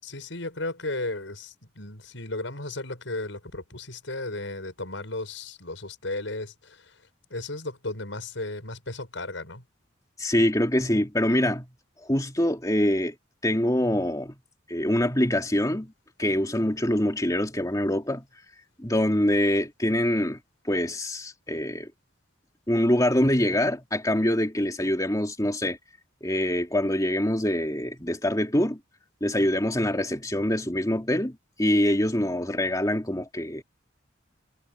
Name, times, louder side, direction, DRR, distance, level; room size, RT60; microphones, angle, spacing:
voice 1, 0.0-7.0 7.3-9.6, left 2 dB, 85° left, 6.1 m, -35 dB
voice 2, 10.2-11.7 12.0-13.2 13.4-14.4 14.7-15.9 16.2-18.2 18.8-20.4 20.6-21.9 22.7-25.8 26.2-28.8 29.2-33.6, left 1 dB, 20° left, 2.8 m, -24 dB
head